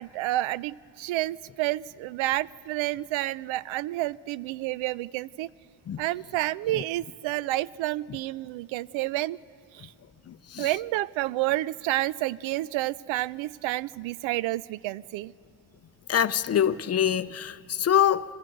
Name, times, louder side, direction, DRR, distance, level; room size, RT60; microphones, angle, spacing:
voice 1, 0.0-5.5 6.0-9.4 9.7-9.9 10.6-15.3, right 16 dB, 70° right, 0.5 m, -29 dB
voice 2, 16.1-18.2, left 9 dB, 30° left, 0.5 m, -24 dB
24.0 x 15.5 x 7.8 m
supercardioid pair, 80°, 49 cm